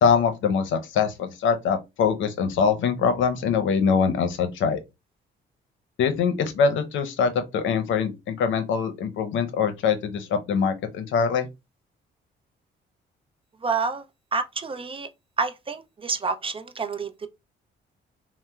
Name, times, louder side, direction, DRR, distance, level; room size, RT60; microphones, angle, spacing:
voice 1, 0.0-4.8 6.0-11.5, left 6 dB, 75° left, 0.7 m, -23 dB
voice 2, 13.6-14.0 14.3-15.1 15.4-17.3, right 4 dB, 25° right, 0.4 m, -28 dB
4.1 x 2.1 x 2.3 m
cardioid pair, 90°, 20 cm